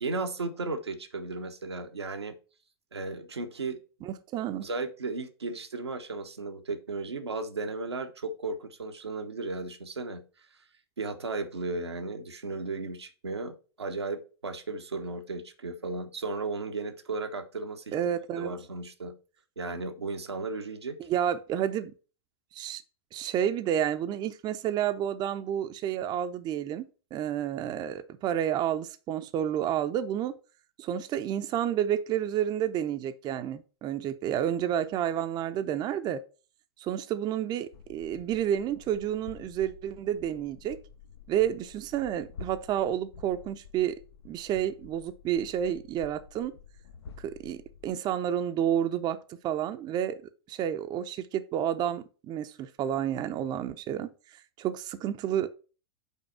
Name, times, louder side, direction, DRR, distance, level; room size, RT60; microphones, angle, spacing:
voice 1, 0.0-2.4 2.9-3.8 4.6-10.2 11.0-17.9 18.4-19.1 19.6-21.0, right 3 dB, 90° right, 1.0 m, -35 dB
voice 2, 4.0-4.6 17.9-18.5 21.0-21.9 22.5-22.8 23.1-30.3 30.8-36.2 36.8-40.8 41.3-44.0 44.2-46.5 47.2-49.2 49.4-50.2 50.5-54.1 54.6-55.5, right 10 dB, 30° right, 0.6 m, -30 dB
sound 1, 37.7-47.9, left 5 dB, 75° left, 0.8 m, -50 dB
5.5 x 4.2 x 5.5 m
hypercardioid pair, 100°, 13 cm